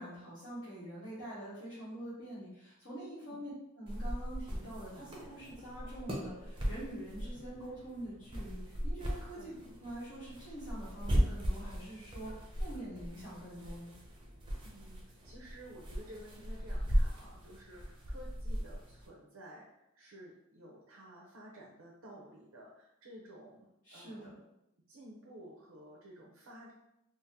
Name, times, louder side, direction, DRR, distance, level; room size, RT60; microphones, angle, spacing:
voice 1, 0.0-9.5 9.8-13.9 23.8-24.3, right 1 dB, 70° left, -12 dB, 1.2 m, -45 dB
sound 1, 3.9-19.1, equal, 25° right, 0.5 m, -37 dB
voice 2, 14.6-24.4 24.9-26.7, right 1 dB, 90° right, -3 dB, 0.6 m, -53 dB
3.6 x 2.0 x 2.7 m, 0.84 s
head